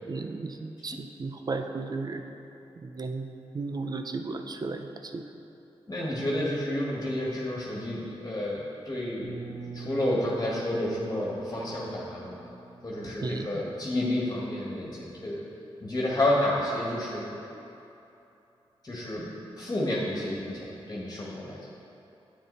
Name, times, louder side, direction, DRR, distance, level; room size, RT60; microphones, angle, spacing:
voice 1, 0.1-2.2 2.8-3.3 3.5-5.3 13.2-13.6, right 3 dB, 40° right, 6 dB, 0.7 m, -34 dB
voice 2, 5.9-12.4 12.8-15.4 15.8-17.3 18.8-19.3 19.5-21.6, left 1 dB, 30° left, -5 dB, 1.8 m, -30 dB
sound 1, 9.2-15.0, right 4 dB, 65° right, 1.0 m, -45 dB
9.2 x 8.6 x 4.1 m, 2.9 s
cardioid pair, 75°, 10 cm